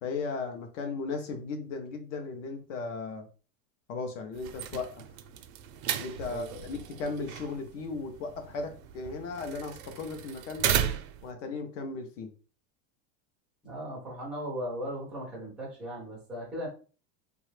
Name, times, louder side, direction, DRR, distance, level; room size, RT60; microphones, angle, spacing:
voice 1, 0.0-3.3 3.9-5.0 6.0-10.8 11.2-12.3, left 4 dB, 60° left, 5 dB, 0.6 m, -36 dB
sound 1, 4.3-11.3, right 10 dB, 75° right, 0.5 m, -35 dB
voice 2, 6.2-6.7 13.6-16.7, equal, ahead, -5 dB, 0.4 m, -37 dB
2.8 x 2.3 x 3.1 m, 0.37 s
supercardioid pair, 175°, 41 cm